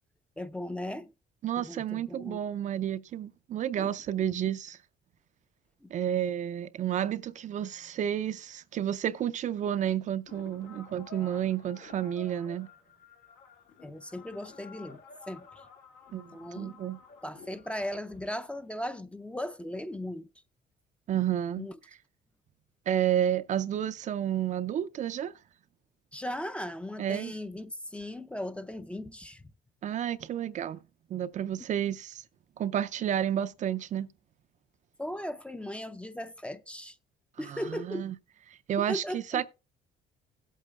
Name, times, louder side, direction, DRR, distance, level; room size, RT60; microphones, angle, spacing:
voice 1, 0.4-1.1 1.6-2.4 3.8-4.0 5.8-5.9 13.8-15.0 15.3-15.5 16.3-16.8 17.2-20.3 21.6-21.7 26.1-29.4 35.0-37.0 37.4-38.1 38.8-39.4, left 1 dB, 5° left, 0.5 m, -37 dB
voice 2, 1.4-4.8 5.9-12.7 16.1-17.0 21.1-21.7 22.9-25.3 27.0-27.3 29.8-30.8 31.1-32.2 32.6-34.1 37.4-38.1 38.5-39.5, right 10 dB, 45° right, 0.4 m, -31 dB
sound 1, 10.3-18.8, left 6 dB, 80° left, 2.0 m, -52 dB
17.0 x 8.3 x 2.3 m
cardioid pair, 110°, 17 cm